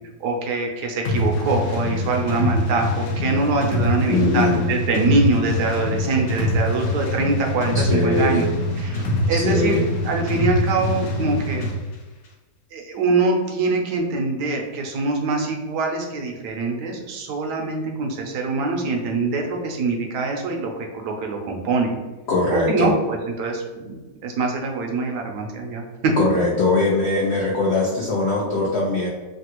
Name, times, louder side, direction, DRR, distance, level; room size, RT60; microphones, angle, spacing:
voice 1, 0.2-8.5 8.8-11.7 12.7-22.0 22.5-26.2, right 3 dB, 75° right, 2 dB, 1.1 m, -24 dB
sound 1, 1.0-11.8, left 1 dB, 65° left, 0.9 m, -24 dB
voice 2, 4.1-4.6 7.7-8.4 9.3-9.8 22.3-22.9 26.2-29.1, left 2 dB, 90° left, -3 dB, 0.5 m, -21 dB
3.2 x 2.3 x 2.9 m, 1.2 s
omnidirectional pair, 1.9 m